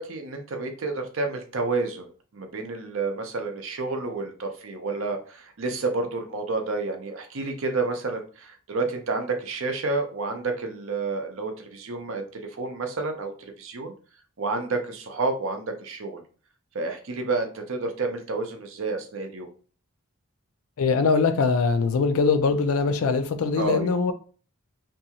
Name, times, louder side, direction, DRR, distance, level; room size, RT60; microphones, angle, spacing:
voice 1, 0.0-13.9 14.4-16.2 16.7-19.5 23.6-23.9, right 3 dB, 60° right, 5 dB, 0.6 m, -30 dB
voice 2, 20.8-24.1, left 4 dB, 70° left, 9 dB, 0.4 m, -22 dB
2.6 x 2.3 x 2.8 m, 0.39 s
head